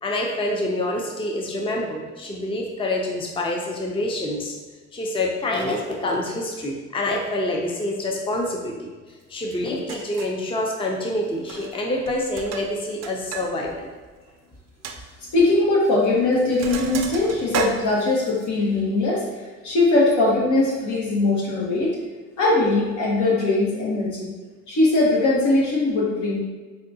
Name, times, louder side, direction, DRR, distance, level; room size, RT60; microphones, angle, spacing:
voice 1, 0.0-4.5 4.9-8.9 9.3-13.9, left 1 dB, 20° left, 0 dB, 0.5 m, -26 dB
Sink (filling or washing), 9.5-9.6 9.9-10.4 11.4-11.8 12.1-13.5 13.8-13.9 14.3-14.4 14.8-15.0 15.9-16.1 16.3-18.5, right 5 dB, 60° right, 0.4 m, -32 dB
voice 2, 15.3-22.0 22.4-24.3 24.7-26.4, left 2 dB, 75° left, -4 dB, 1.2 m, -20 dB
4.8 x 2.2 x 2.7 m, 1.4 s
cardioid pair, 90°, 30 cm